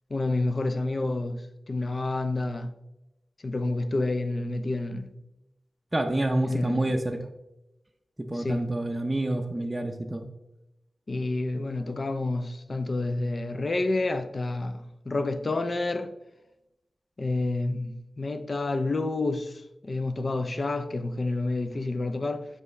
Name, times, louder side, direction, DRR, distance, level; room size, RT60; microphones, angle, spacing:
voice 1, 0.1-2.7 3.4-5.1 6.5-6.8 8.3-8.7 11.1-16.1 17.2-22.5, left 2 dB, 45° left, 0.5 m, -29 dB
voice 2, 5.9-7.2 8.3-10.3, right 1 dB, 20° right, 0.6 m, -27 dB
7.7 x 4.8 x 3.2 m
wide cardioid pair, 75°, 0 cm